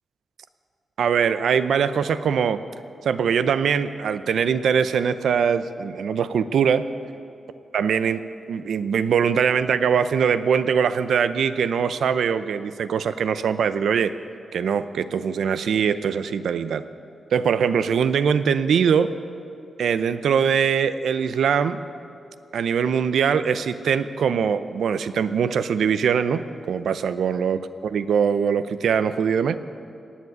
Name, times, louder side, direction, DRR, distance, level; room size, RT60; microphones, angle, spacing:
voice 1, 1.0-2.6 3.0-6.9 7.7-8.2 8.5-14.1 14.5-16.8 17.3-19.1 19.8-21.8 22.5-29.6, right 7 dB, 85° right, 12 dB, 0.6 m, -22 dB
18.5 x 7.4 x 9.5 m, 2.5 s
wide cardioid pair, 180°, 0 cm